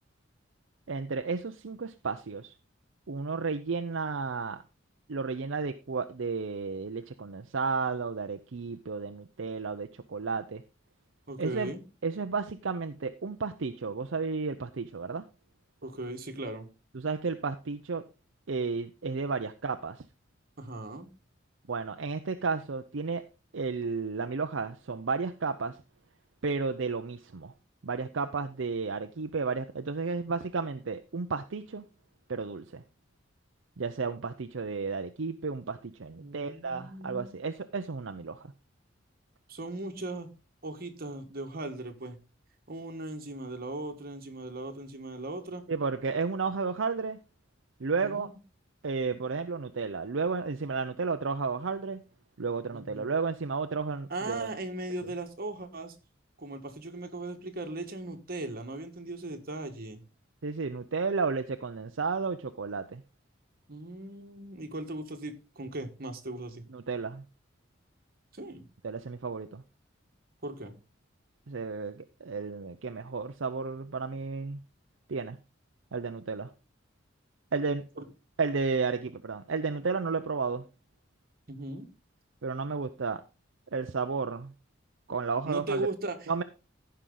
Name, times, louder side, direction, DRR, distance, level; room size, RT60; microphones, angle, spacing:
voice 1, 0.9-2.5 3.1-4.6 5.1-10.6 11.4-11.7 12.0-15.2 16.9-18.0 18.5-20.0 21.7-23.2 23.5-25.8 26.4-27.5 27.8-31.8 32.3-32.8 33.8-38.5 45.7-47.2 47.8-48.3 48.8-52.0 52.4-54.5 60.4-63.0 66.7-67.3 68.8-69.6 71.5-74.6 75.1-75.4 75.9-76.5 77.5-77.9 78.4-80.6 82.4-83.2 83.7-84.5 85.1-85.9 86.3-86.4, right 4 dB, 65° right, 7 dB, 0.6 m, -32 dB
voice 2, 11.3-11.8 15.8-16.7 20.6-21.1 36.2-37.4 39.5-40.3 40.6-42.2 42.7-45.6 48.0-48.4 52.7-53.1 54.1-55.9 56.4-60.0 63.7-66.7 68.3-68.7 70.4-70.7 78.0-78.1 81.5-81.9 85.5-86.4, right 2 dB, 50° right, 5 dB, 1.6 m, -38 dB
15.0 x 5.7 x 3.9 m, 0.30 s
head